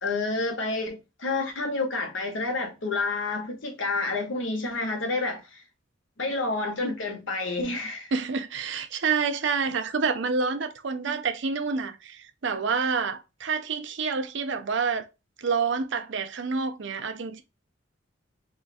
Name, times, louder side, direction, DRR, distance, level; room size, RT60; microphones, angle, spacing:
voice 1, 0.0-5.6 6.2-8.1, left 3 dB, 80° left, 1.1 m, -29 dB
voice 2, 8.1-15.1 15.4-17.4, right 5 dB, 70° right, 0.6 m, -28 dB
3.7 x 2.4 x 2.4 m
head